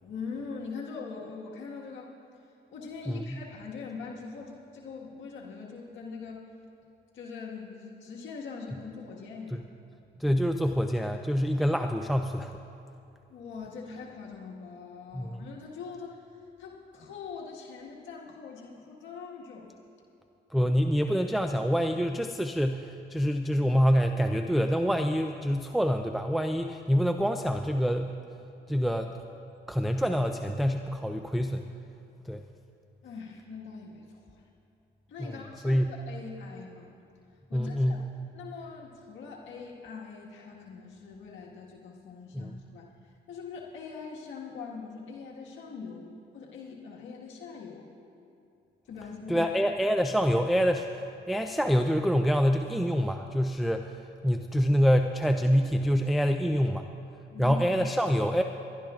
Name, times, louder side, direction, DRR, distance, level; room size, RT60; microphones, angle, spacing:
voice 1, 0.0-2.1 2.7-6.4 7.1-9.6 13.3-16.2 16.6-19.7 33.0-34.4 35.1-37.0 37.5-38.1 38.3-47.9 48.9-49.4 57.3-57.6, left 5 dB, 75° left, -2 dB, 1.6 m, -42 dB
voice 2, 3.1-3.4 9.5-9.6 10.2-12.6 15.1-15.5 20.5-28.2 28.7-29.2 29.7-31.7 32.3-32.4 35.2-35.4 35.6-35.9 37.5-38.0 42.3-42.6 49.3-56.9 57.4-58.4, equal, ahead, 5 dB, 0.4 m, -26 dB
28.5 x 11.5 x 2.5 m, 2.7 s
cardioid pair, 90°, 20 cm